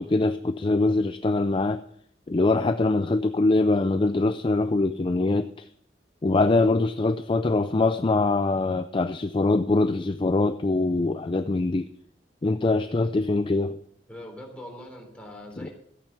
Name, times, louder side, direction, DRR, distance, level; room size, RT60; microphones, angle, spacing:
voice 1, 0.0-1.8 2.3-5.7 6.2-11.9 12.4-13.8, left 2 dB, 30° left, 10 dB, 0.4 m, -23 dB
voice 2, 14.1-15.7, left 1 dB, 5° left, 0 dB, 3.4 m, -42 dB
13.5 x 8.8 x 5.9 m, 0.64 s
head